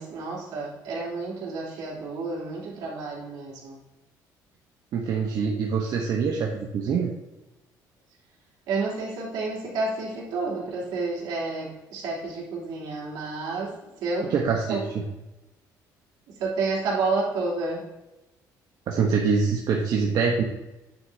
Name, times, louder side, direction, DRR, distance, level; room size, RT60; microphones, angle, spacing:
voice 1, 0.0-3.8 8.7-13.7 14.0-14.3 14.7-14.8 16.4-17.8, right 3 dB, 85° right, -4 dB, 3.2 m, -30 dB
voice 2, 4.9-7.1 14.3-15.0 18.9-20.4, right 5 dB, 60° right, -1 dB, 1.1 m, -24 dB
9.3 x 8.0 x 2.8 m, 1.0 s
cardioid pair, 125°, 7 cm